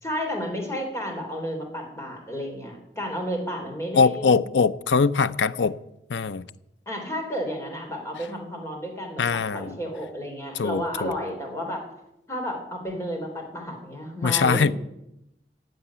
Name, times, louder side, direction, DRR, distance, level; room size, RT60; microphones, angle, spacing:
voice 1, 0.0-4.4 6.9-11.8 12.3-14.6, equal, 15° left, 3.5 m, -32 dB
voice 2, 3.9-5.8 6.1-6.5 9.2-9.8 10.5-11.1 14.2-14.7, left 5 dB, 90° left, 0.6 m, -22 dB
15.0 x 7.9 x 9.8 m
head